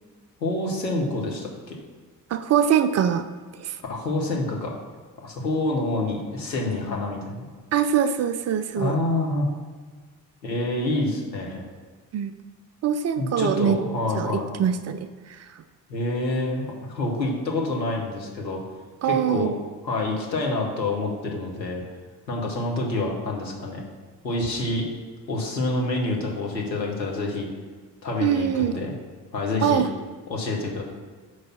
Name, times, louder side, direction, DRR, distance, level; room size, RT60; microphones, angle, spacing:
voice 1, 0.4-1.8 3.9-4.7 5.2-7.4 8.8-9.5 10.4-11.6 13.2-14.5 15.9-18.6 19.0-19.5 19.8-21.8 22.3-23.8 24.2-24.9 25.3-27.5 28.0-28.9 29.3-29.8 30.3-30.8, left 2 dB, 85° left, -1 dB, 1.1 m, -27 dB
voice 2, 2.3-3.3 3.6-3.8 7.7-9.0 12.1-12.3 12.8-13.8 14.1-14.3 14.6-15.4 19.0-19.5 28.2-28.8 29.6-29.9, right 8 dB, 35° right, 11 dB, 0.5 m, -23 dB
6.1 x 4.8 x 6.0 m, 1.5 s
figure-of-eight pair, 45°, 50 cm